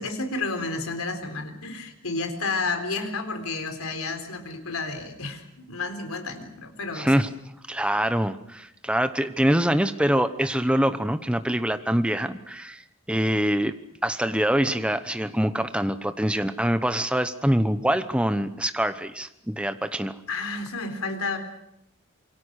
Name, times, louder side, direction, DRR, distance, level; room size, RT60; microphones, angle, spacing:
voice 1, 0.0-7.1 20.3-21.4, left 3 dB, 85° left, 7 dB, 3.9 m, -31 dB
voice 2, 7.0-7.3 7.7-12.8 13.1-13.7 14.0-20.1, equal, 5° right, 10 dB, 1.0 m, -24 dB
27.5 x 23.5 x 6.5 m, 0.80 s
head